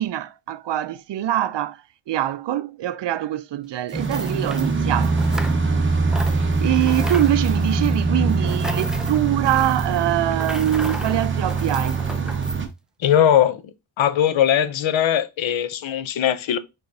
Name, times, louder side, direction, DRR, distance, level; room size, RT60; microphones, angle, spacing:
voice 1, 0.0-5.2 6.2-12.0, right 12 dB, 60° right, 0.5 m, -24 dB
sound 1, 3.9-5.8 6.1-12.6, equal, ahead, 0.4 m, -35 dB
sound 2, 3.9-12.7, right 4 dB, 25° right, 0.9 m, -23 dB
voice 2, 13.0-13.6 14.0-16.6, left 10 dB, 70° left, 0.7 m, -19 dB
4.9 x 3.8 x 2.6 m
wide cardioid pair, 120°, 49 cm